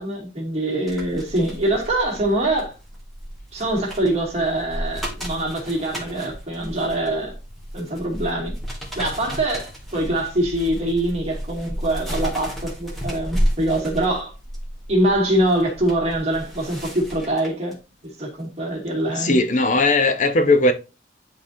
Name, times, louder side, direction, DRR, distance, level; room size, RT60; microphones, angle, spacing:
voice 1, 0.0-2.7 3.5-7.3 7.7-8.5 9.0-14.3 14.9-17.8 18.2-19.4, right 1 dB, 35° right, 2.3 m, -24 dB
sound 1, 0.9-17.7 18.2-18.4, equal, ahead, 1.9 m, -32 dB
voice 2, 19.1-20.7, left 2 dB, 40° left, 0.8 m, -18 dB
10.0 x 4.0 x 2.7 m
head